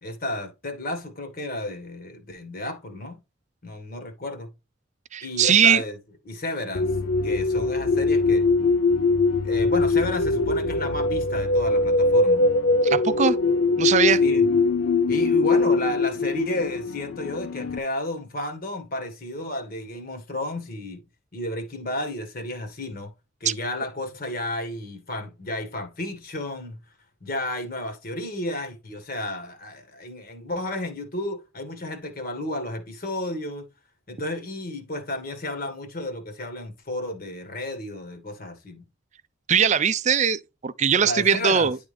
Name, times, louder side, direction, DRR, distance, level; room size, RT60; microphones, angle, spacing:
voice 1, 0.0-3.2 3.6-4.5 5.2-6.0 6.2-6.9 7.2-8.5 9.4-12.5 14.2-14.5 15.1-21.0 21.3-23.1 23.4-26.8 27.2-33.6 34.1-38.8 41.0-41.7, left 1 dB, 45° left, 1.6 m, -32 dB
voice 2, 5.1-5.8 12.8-13.4 13.8-14.2 23.5-23.6 39.5-41.8, right 7 dB, 35° right, 0.4 m, -20 dB
sound 1, 6.7-17.8, left 3 dB, 70° left, 0.4 m, -22 dB
10.5 x 3.6 x 3.3 m
head